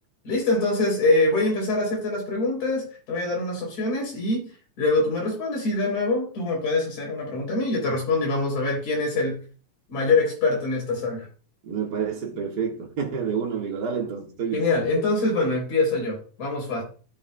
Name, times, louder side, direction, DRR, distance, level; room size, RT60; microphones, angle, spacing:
voice 1, 0.2-4.5 4.8-9.4 9.9-11.3 14.5-16.8, left 2 dB, 70° left, 4.7 m, -24 dB
voice 2, 11.6-14.7, right 6 dB, 40° right, 1.6 m, -28 dB
15.0 x 5.4 x 2.2 m
omnidirectional pair, 3.4 m